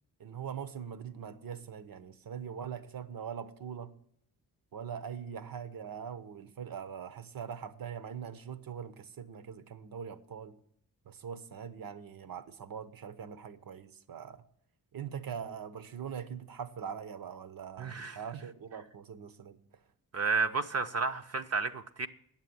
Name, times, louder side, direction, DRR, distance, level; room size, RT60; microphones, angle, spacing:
voice 1, 0.2-4.0 4.7-10.6 11.0-14.4 14.9-19.6, right 7 dB, 70° right, 0.9 m, -42 dB
voice 2, 17.8-18.2 20.1-22.1, right 4 dB, 45° right, 0.7 m, -31 dB
9.8 x 7.4 x 9.4 m
wide cardioid pair, 120°, 37 cm